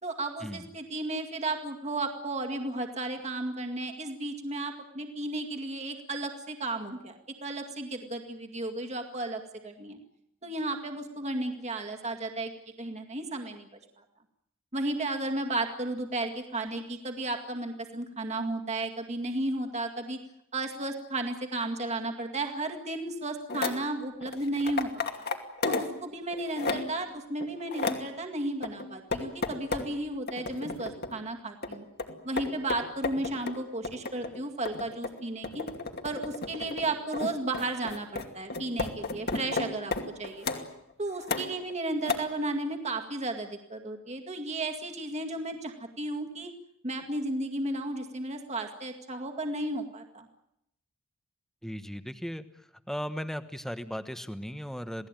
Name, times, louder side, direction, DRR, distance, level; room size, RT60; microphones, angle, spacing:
voice 1, 0.0-10.0 10.4-12.5 12.8-13.7 14.7-20.2 20.5-25.3 25.6-31.8 32.2-35.7 36.0-39.9 40.2-40.5 41.0-46.5 46.8-50.3, right 2 dB, 30° right, 3 dB, 2.1 m, -34 dB
sound 1, 23.5-23.8 24.2-26.0 26.3-27.0 27.4-28.1 28.6-29.9 30.3-31.2 31.6-40.7 41.2-41.7 42.0-42.2, left 3 dB, 50° left, 2.6 m, -33 dB
voice 2, 51.6-52.4 52.9-55.1, equal, ahead, 10 dB, 1.2 m, -36 dB
28.0 x 18.5 x 9.1 m, 0.82 s
head